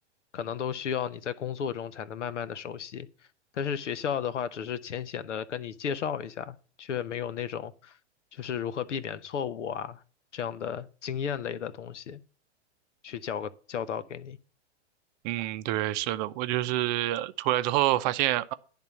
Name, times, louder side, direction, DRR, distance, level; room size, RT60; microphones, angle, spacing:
voice 1, 0.3-3.1 3.5-7.9 8.3-10.0 10.3-12.2 13.0-14.4, left 8 dB, 85° left, 0.9 m, -34 dB
voice 2, 15.2-18.5, right 15 dB, 40° right, 0.6 m, -27 dB
10.5 x 3.7 x 7.1 m
hypercardioid pair, 115°, 35 cm